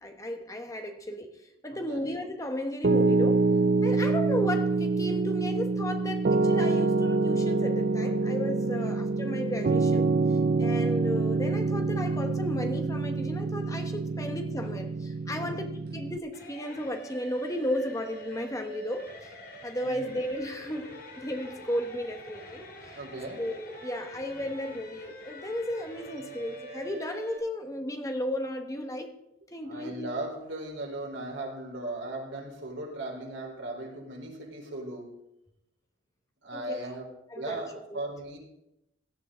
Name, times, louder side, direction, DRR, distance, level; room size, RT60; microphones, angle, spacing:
voice 1, 0.0-1.3 1.6-3.5 3.8-10.1 10.6-19.4 19.6-22.6 23.4-29.2 29.5-30.2 36.5-36.8 37.3-37.6 37.9-38.0, equal, 15° left, 1.3 m, -34 dB
voice 2, 1.7-2.1 8.6-9.0 15.3-15.7 19.8-20.2 22.9-23.4 29.6-35.1 36.4-37.1 37.3-38.4, right 1 dB, 75° right, 4.3 m, -38 dB
Piano, 2.8-16.2, right 3 dB, 50° right, 0.4 m, -26 dB
sound 1, 16.3-27.4, right 1 dB, 50° left, 3.2 m, -45 dB
17.5 x 12.5 x 3.9 m
head